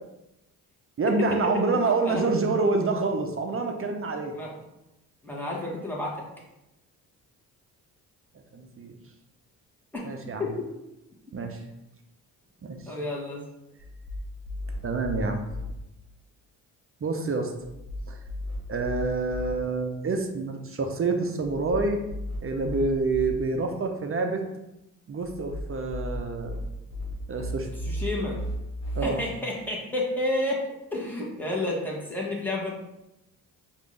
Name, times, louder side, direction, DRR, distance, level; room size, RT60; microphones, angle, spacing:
voice 1, 1.0-4.3 8.5-9.0 10.0-10.4 11.3-11.6 12.6-12.8 14.8-15.5 17.0-17.5 18.1-18.2 18.7-22.0 22.4-24.4 25.1-26.6 27.3-27.7 29.0-29.2, right 3 dB, 35° right, 4 dB, 0.7 m, -27 dB
voice 2, 1.7-2.2 4.3-4.5 5.2-6.2 9.9-10.0 10.4-10.5 12.9-13.4 27.8-28.4 29.0-30.6 30.9-32.7, left 1 dB, 5° left, -4 dB, 1.4 m, -30 dB
sound 1, 13.8-15.7 17.6-19.5 21.4-23.3 25.2-29.0, left 1 dB, 45° left, 1.5 m, -35 dB
5.0 x 2.6 x 3.3 m, 0.91 s
supercardioid pair, 60°, 38 cm